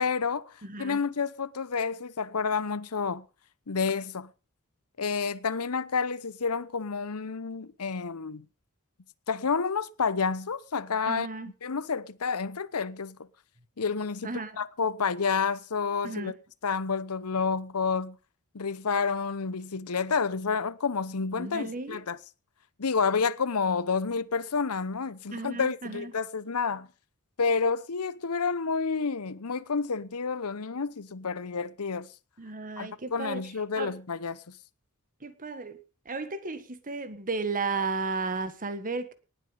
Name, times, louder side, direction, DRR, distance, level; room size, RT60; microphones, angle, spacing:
voice 1, 0.0-0.5 0.8-3.2 3.7-4.3 5.0-8.5 9.3-11.3 11.6-13.2 13.8-16.3 16.6-18.2 18.5-22.2 22.8-26.9 27.4-32.1 32.8-34.4, left 5 dB, 80° left, 0.9 m, -29 dB
voice 2, 0.6-1.0 11.1-11.5 14.2-14.6 16.0-16.3 21.4-22.0 25.3-26.1 32.4-33.4 33.8-33.9 35.2-35.8 36.0-39.1, right 3 dB, 40° right, 1.5 m, -34 dB
19.0 x 8.2 x 5.5 m
head